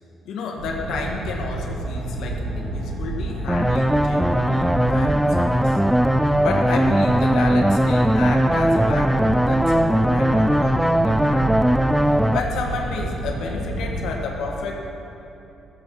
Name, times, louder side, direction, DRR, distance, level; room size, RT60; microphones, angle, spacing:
voice 1, 0.3-5.8 6.4-11.5 12.3-14.8, left 4 dB, 80° left, 0 dB, 1.8 m, -31 dB
sound 1, 0.6-14.1, right 2 dB, 85° right, 2.8 m, -30 dB
sound 2, 3.5-12.4, equal, ahead, 0.3 m, -19 dB
15.5 x 7.8 x 6.5 m, 3.0 s
cardioid pair, 100°, 0 cm